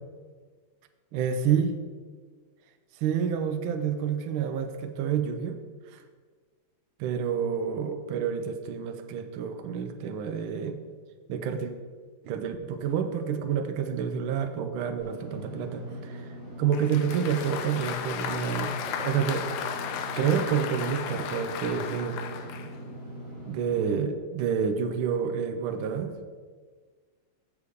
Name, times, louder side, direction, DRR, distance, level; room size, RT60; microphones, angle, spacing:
voice 1, 1.1-1.7 3.0-5.6 5.9-6.0 7.0-10.8 11.3-11.7 12.2-16.3 16.6-19.5 20.2-22.5 23.5-26.1, right 7 dB, 75° right, 7 dB, 1.4 m, -29 dB
Engine / Mechanisms, 15.0-23.9, equal, 60° left, 3.4 m, -41 dB
Applause, 16.7-22.7, left 7 dB, 90° left, 0.9 m, -35 dB
7.0 x 6.5 x 4.9 m, 1.5 s
omnidirectional pair, 2.4 m